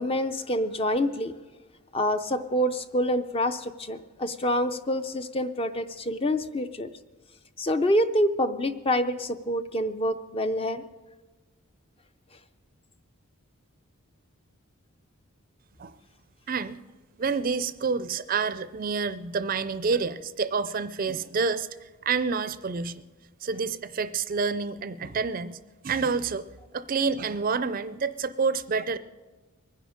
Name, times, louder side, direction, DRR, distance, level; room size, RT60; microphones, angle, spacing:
voice 1, 0.0-1.3 1.9-6.9 7.6-10.8, equal, 25° left, 10 dB, 0.5 m, -27 dB
voice 2, 16.5-16.8 17.2-21.7 22.0-23.0 23.4-25.6 25.8-26.5 26.7-29.0, right 5 dB, 40° right, 14 dB, 0.4 m, -28 dB
22.5 x 10.0 x 5.0 m, 1.3 s
head